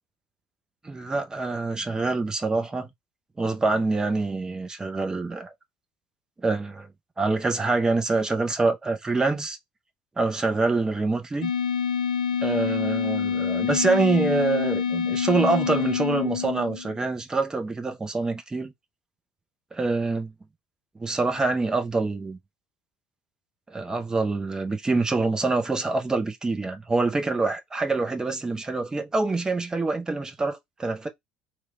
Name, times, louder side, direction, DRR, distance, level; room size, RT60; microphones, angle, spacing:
voice 1, 0.8-2.9 3.4-5.5 6.4-6.9 7.2-9.6 10.2-11.5 12.4-18.7 19.7-20.3 21.0-22.4 23.7-31.1, right 3 dB, 15° right, 0.9 m, -25 dB
sound 1, 11.4-17.0, left 7 dB, 75° left, 0.3 m, -27 dB
3.2 x 2.5 x 4.2 m
figure-of-eight pair, 60°, 4 cm